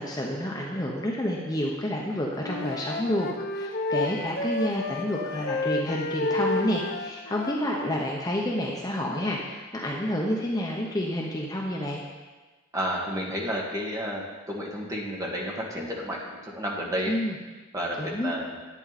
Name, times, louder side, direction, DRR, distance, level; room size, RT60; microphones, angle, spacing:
voice 1, 0.0-12.0 17.1-17.3 18.0-18.3, left 1 dB, 20° left, -2 dB, 1.0 m, -29 dB
Wind instrument woodwind instrument, 2.4-8.0, left 2 dB, 50° left, 0.7 m, -31 dB
voice 2, 12.7-17.2 17.7-18.6, equal, 15° right, -2 dB, 1.8 m, -31 dB
11.0 x 8.9 x 4.2 m, 1.3 s
head